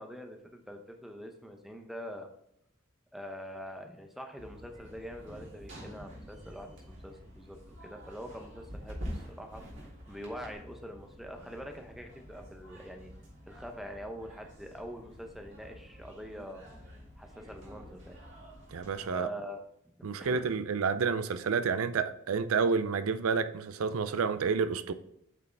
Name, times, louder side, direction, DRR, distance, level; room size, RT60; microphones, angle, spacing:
voice 1, 0.0-2.3 3.1-9.6 10.1-13.1 13.5-16.6 17.2-18.2 19.1-19.6 20.2-20.5, equal, ahead, 0.7 m, -44 dB
sound 1, 4.4-19.1, equal, 55° right, 2.3 m, -48 dB
voice 2, 18.7-19.3 20.0-24.9, right 5 dB, 80° right, 0.5 m, -29 dB
8.0 x 4.9 x 3.4 m
head